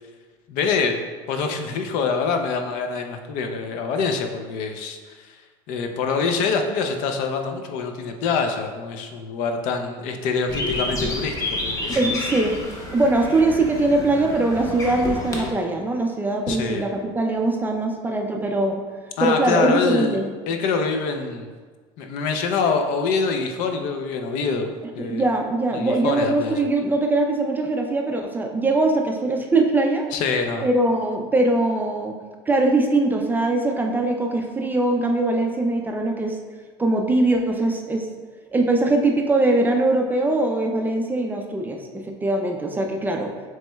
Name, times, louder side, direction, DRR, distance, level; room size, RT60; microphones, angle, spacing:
voice 1, 0.5-5.4 5.7-12.1 16.5-16.8 19.2-20.2 20.5-21.5 22.0-25.2 25.7-26.6 30.1-30.7, left 5 dB, 70° left, 5 dB, 0.5 m, -25 dB
sound 1, 10.5-15.5, left 1 dB, 20° left, 0.8 m, -29 dB
voice 2, 11.9-12.6 12.9-20.3 25.0-30.1 30.6-32.2 32.5-36.4 36.8-38.1 38.5-43.3, right 2 dB, 15° right, 2 dB, 0.3 m, -22 dB
7.4 x 3.1 x 2.2 m, 1.4 s
cardioid pair, 145°, 14 cm